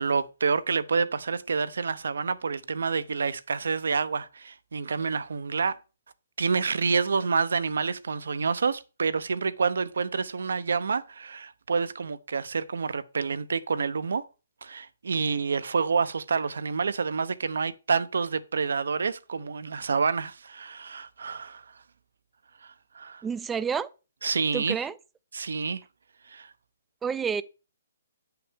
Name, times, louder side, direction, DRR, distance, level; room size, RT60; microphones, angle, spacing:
voice 1, 0.0-5.8 6.4-14.3 14.6-21.6 22.6-23.2 24.2-24.8 25.3-25.8 26.3-26.5, right 5 dB, 75° right, 0.7 m, -28 dB
voice 2, 23.2-23.9 24.5-24.9 27.0-27.4, right 6 dB, 10° right, 0.4 m, -29 dB
8.5 x 5.8 x 3.5 m
hypercardioid pair, 150°, 0 cm